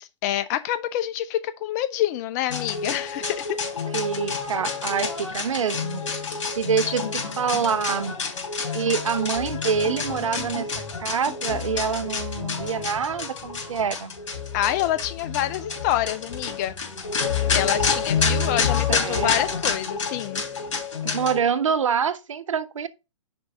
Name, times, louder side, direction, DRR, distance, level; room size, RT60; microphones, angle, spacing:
voice 1, 0.0-3.6 14.5-16.8 17.5-20.4, left 13 dB, 35° left, 0.5 m, -27 dB
sound 1, 2.5-21.4, left 5 dB, 70° left, 2.9 m, -28 dB
voice 2, 3.9-6.0 6.6-8.1 8.7-10.7 11.0-14.1 18.9-19.3 21.0-22.9, right 7 dB, 80° right, 0.7 m, -26 dB
5.3 x 4.7 x 5.2 m
hypercardioid pair, 125°, 16 cm